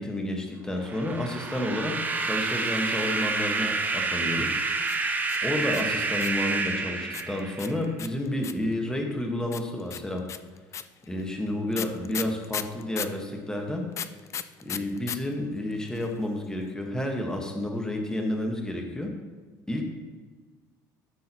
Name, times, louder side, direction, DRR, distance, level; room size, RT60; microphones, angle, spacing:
voice 1, 0.0-4.6 5.0-5.1 5.4-10.2 11.1-13.8 14.6-19.2 19.7-19.9, left 1 dB, 10° left, 2 dB, 1.4 m, -30 dB
sound 1, 0.8-7.8, right 3 dB, 20° right, 0.8 m, -29 dB
sound 2, 4.8-6.5 7.1-8.7 9.5-13.2 13.9-15.2 15.4-15.5 15.7-16.2, left 8 dB, 35° left, 0.4 m, -35 dB
12.0 x 6.3 x 3.0 m, 1.4 s
supercardioid pair, 105°, 8 cm